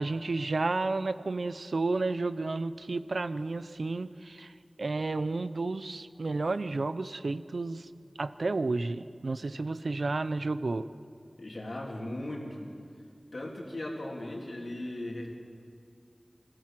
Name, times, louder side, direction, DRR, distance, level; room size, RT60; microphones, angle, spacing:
voice 1, 0.0-4.5 4.8-7.9 8.2-10.9, right 3 dB, 85° right, 13 dB, 0.7 m, -31 dB
voice 2, 11.4-12.7 13.3-15.3, left 1 dB, 70° left, 0 dB, 3.4 m, -37 dB
26.0 x 15.0 x 7.6 m, 2.3 s
wide cardioid pair, 40°, 0 cm